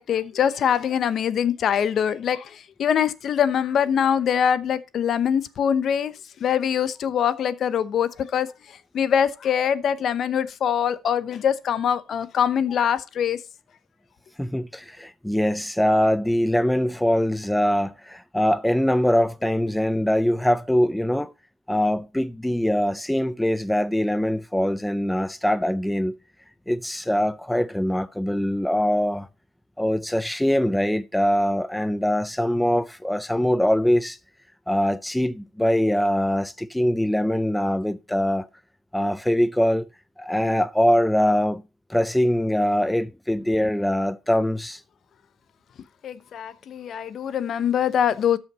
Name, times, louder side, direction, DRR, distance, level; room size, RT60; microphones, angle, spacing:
voice 1, 0.0-2.5 2.8-6.1 6.4-8.5 8.9-13.4 46.0-48.4, left 8 dB, 45° left, 0.8 m, -23 dB
voice 2, 14.4-21.3 21.7-26.1 26.7-29.3 29.8-34.2 34.7-38.5 38.9-39.9 40.2-41.6 41.9-44.8, equal, 5° left, 0.4 m, -23 dB
13.0 x 5.9 x 4.0 m
cardioid pair, 140°, 0 cm